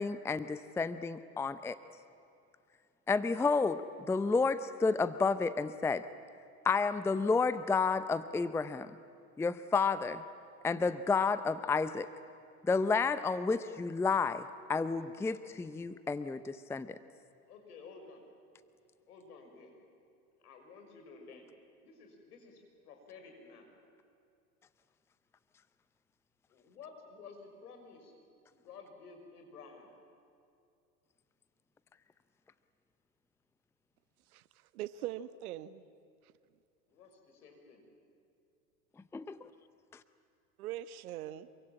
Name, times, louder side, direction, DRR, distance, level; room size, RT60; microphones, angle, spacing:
voice 1, 0.0-1.8 3.1-6.1 6.6-8.9 9.4-10.2 10.6-12.1 12.6-17.0 39.1-39.5, left 4 dB, 5° left, 14 dB, 0.6 m, -31 dB
voice 2, 17.5-18.2 19.1-19.7 20.4-21.5 21.8-23.7 26.5-28.1 28.5-29.9 36.9-37.8, left 4 dB, 75° left, 4 dB, 6.0 m, -53 dB
voice 3, 34.7-35.8 40.6-41.5, right 13 dB, 65° right, 14 dB, 1.3 m, -41 dB
26.5 x 23.5 x 8.9 m, 2.5 s
hypercardioid pair, 90°, 47 cm